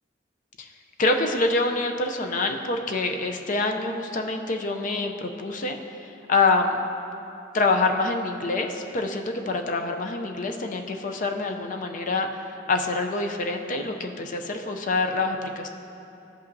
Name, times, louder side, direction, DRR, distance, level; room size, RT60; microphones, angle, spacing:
voice 1, 1.0-5.8 6.3-6.8 7.5-12.3 12.7-15.7, left 3 dB, 45° left, 4 dB, 0.5 m, -26 dB
13.0 x 5.4 x 2.7 m, 2.8 s
head